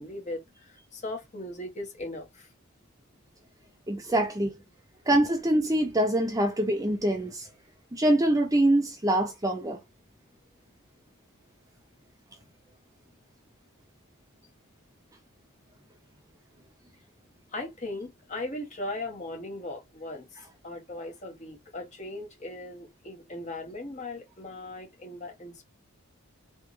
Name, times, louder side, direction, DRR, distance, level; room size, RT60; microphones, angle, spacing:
voice 1, 0.0-2.5 17.5-20.3 20.6-25.6, left 2 dB, 30° left, 1.5 m, -38 dB
voice 2, 3.9-4.5 5.1-7.5 7.9-9.8, right 1 dB, 15° right, 0.6 m, -24 dB
4.0 x 3.4 x 3.2 m
head